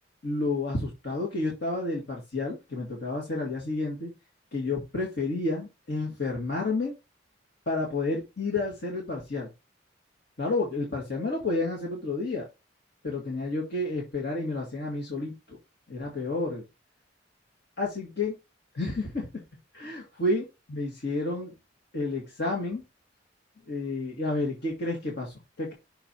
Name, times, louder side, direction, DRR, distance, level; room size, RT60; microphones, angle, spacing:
voice 1, 0.2-4.1 4.5-6.9 7.7-9.5 10.4-12.5 13.0-15.6 15.9-16.6 17.8-18.4 18.7-19.4 19.7-20.4 20.7-21.5 21.9-22.8 23.7-25.7, left 2 dB, 65° left, -1 dB, 1.8 m, -30 dB
6.1 x 4.5 x 4.3 m, 0.24 s
head